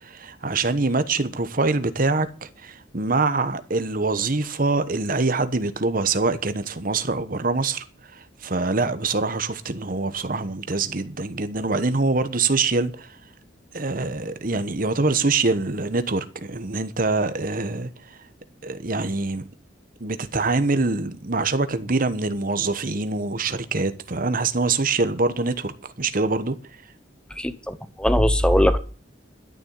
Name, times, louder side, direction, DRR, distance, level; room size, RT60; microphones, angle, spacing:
voice 1, 0.0-7.8 8.1-13.2 13.7-18.2 18.6-19.5 20.0-25.7 26.0-26.5, right 3 dB, 45° right, 1.1 m, -24 dB
voice 2, 27.4-28.8, equal, 5° left, 0.9 m, -20 dB
12.0 x 7.0 x 8.2 m
head